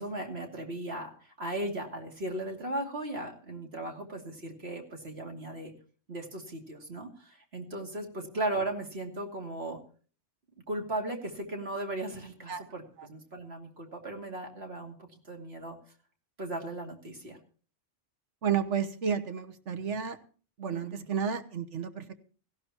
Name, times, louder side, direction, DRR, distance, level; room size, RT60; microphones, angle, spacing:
voice 1, 0.0-5.7 6.1-9.8 10.7-15.8 16.4-17.4 20.7-21.0, right 1 dB, 60° right, 2 dB, 2.9 m, -37 dB
voice 2, 18.4-20.2 20.6-22.1, right 7 dB, 75° right, 9 dB, 1.5 m, -31 dB
18.0 x 15.5 x 3.0 m, 0.40 s
omnidirectional pair, 1.2 m